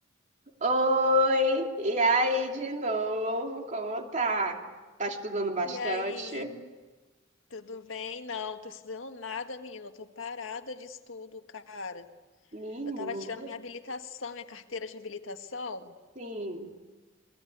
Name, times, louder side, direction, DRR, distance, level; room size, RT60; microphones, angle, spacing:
voice 1, 0.6-4.6 5.0-6.5 12.5-13.5 16.2-16.7, right 1 dB, 40° right, 3 dB, 2.9 m, -28 dB
voice 2, 5.6-6.7 7.5-12.1 12.9-16.0, left 4 dB, 85° left, 6 dB, 1.7 m, -39 dB
28.0 x 21.0 x 9.5 m, 1.3 s
head